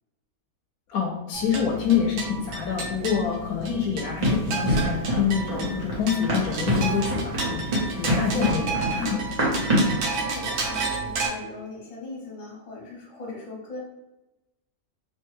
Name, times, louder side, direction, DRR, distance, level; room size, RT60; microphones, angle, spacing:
voice 1, 0.9-9.2, left 7 dB, 90° left, 0 dB, 1.1 m, -27 dB
sound 1, 1.3-11.3, right 4 dB, 80° right, 1.2 m, -32 dB
Run, 4.2-10.0, equal, 35° right, 0.9 m, -26 dB
voice 2, 9.4-13.8, left 3 dB, 60° left, -4 dB, 1.3 m, -40 dB
3.0 x 2.2 x 3.1 m, 0.97 s
omnidirectional pair, 1.5 m